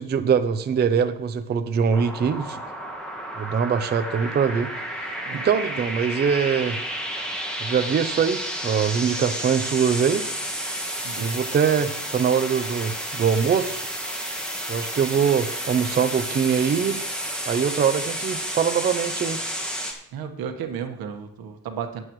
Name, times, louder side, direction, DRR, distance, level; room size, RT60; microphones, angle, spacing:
voice 1, 0.0-2.6 3.4-4.7 5.0-6.8 7.6-10.2 11.2-13.9 14.7-17.0 17.5-19.4, right 7 dB, 30° right, 9 dB, 0.5 m, -23 dB
sound 1, 1.9-19.9, equal, 5° left, 1.7 m, -31 dB
voice 2, 20.1-22.0, right 7 dB, 80° right, 6 dB, 1.4 m, -33 dB
19.0 x 8.0 x 3.1 m, 0.73 s
cardioid pair, 165°, 36 cm